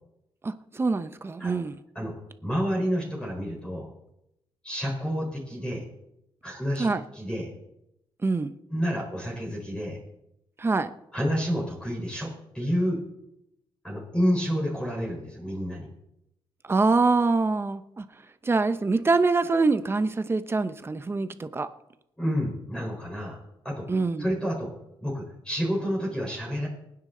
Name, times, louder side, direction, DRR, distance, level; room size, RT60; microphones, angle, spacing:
voice 1, 0.4-1.7 6.8-7.0 8.2-8.5 10.6-10.9 16.7-18.0 18.4-21.7 23.9-24.2, right 3 dB, 25° right, 10 dB, 0.9 m, -24 dB
voice 2, 2.4-3.9 4.6-5.8 6.4-7.5 8.7-10.0 11.1-13.0 13.8-15.9 22.2-23.4 23.6-23.9 24.2-24.7 25.0-26.7, equal, 10° left, -2 dB, 4.6 m, -29 dB
24.5 x 9.8 x 3.9 m, 0.83 s
cardioid pair, 110°, 10 cm